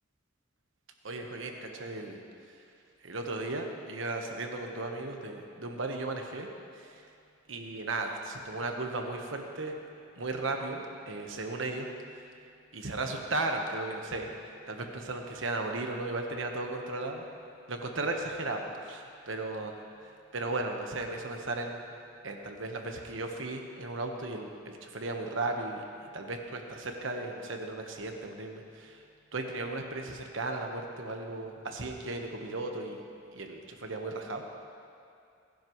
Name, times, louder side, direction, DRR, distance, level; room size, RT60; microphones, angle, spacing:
voice 1, 1.0-2.2 2.6-2.7 3.0-6.5 6.7-7.1 7.5-9.7 10.2-12.2 12.7-17.2 17.7-21.8 22.2-25.8 26.1-29.0 29.3-33.0 33.3-34.5, right 2 dB, 75° right, 3 dB, 1.2 m, -36 dB
21.0 x 10.5 x 3.2 m, 2.5 s
head